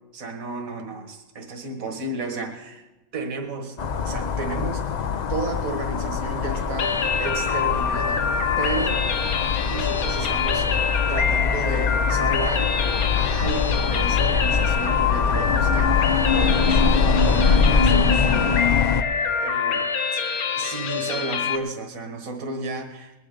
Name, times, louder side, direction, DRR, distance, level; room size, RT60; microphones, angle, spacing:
voice 1, 0.1-2.9 3.1-4.8 5.3-8.3 8.6-9.0 9.7-12.7 13.2-16.8 17.2-18.7 19.4-20.2 20.6-23.2, right 3 dB, 70° right, 4 dB, 1.8 m, -32 dB
sound 1, 3.8-19.0, left 5 dB, 65° left, 0.4 m, -23 dB
sound 2, 6.8-21.6, left 6 dB, 85° left, 1.3 m, -25 dB
21.0 x 9.3 x 5.1 m, 1.0 s
omnidirectional pair, 1.5 m